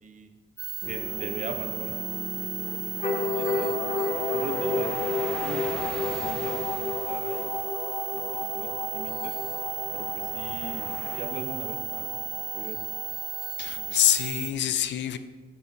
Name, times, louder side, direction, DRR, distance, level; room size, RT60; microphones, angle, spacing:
sound 1, 0.6-14.5, right 11 dB, 65° right, 0.5 m, -34 dB
sound 2, 0.8-14.4, left 4 dB, 40° left, 1.5 m, -33 dB
voice 1, 0.9-2.9 3.3-3.8 4.3-7.6 8.1-9.4 9.9-12.8 13.7-13.9, right 4 dB, 40° right, 6 dB, 1.0 m, -40 dB
sound 3, 2.1-11.2, equal, 5° left, 1.2 m, -45 dB
voice 2, 13.6-15.2, left 11 dB, 65° left, 12 dB, 0.6 m, -25 dB
7.3 x 5.6 x 6.0 m, 1.3 s
cardioid pair, 90°, 20 cm